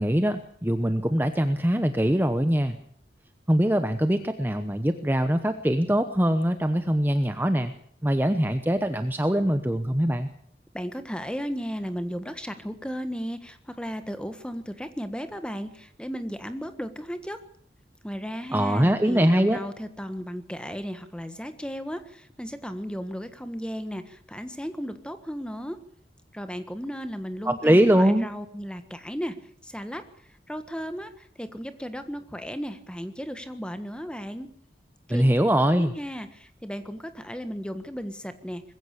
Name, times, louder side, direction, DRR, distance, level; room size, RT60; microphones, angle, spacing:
voice 1, 0.0-2.8 3.5-7.7 8.0-10.3 18.5-19.6 27.5-28.3 35.1-35.9, equal, 10° right, 9 dB, 0.9 m, -22 dB
voice 2, 10.7-17.4 18.0-25.8 26.3-29.3 29.6-30.0 30.5-34.5 35.1-35.2 35.7-38.6, equal, 5° left, 10 dB, 1.5 m, -35 dB
21.0 x 15.5 x 8.4 m, 0.63 s
head